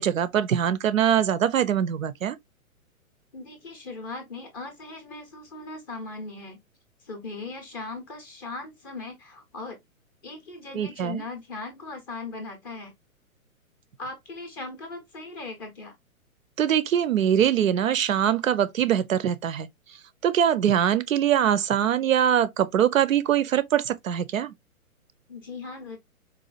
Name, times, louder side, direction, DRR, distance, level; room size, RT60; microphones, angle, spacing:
voice 1, 0.0-2.4 10.7-11.2 16.6-19.7 20.2-24.5, right 9 dB, 70° right, 0.5 m, -23 dB
voice 2, 3.3-6.6 7.0-9.8 10.2-12.9 14.0-16.0 25.3-26.0, left 3 dB, 15° left, 0.5 m, -38 dB
4.0 x 2.3 x 2.3 m
figure-of-eight pair, 115°, 42 cm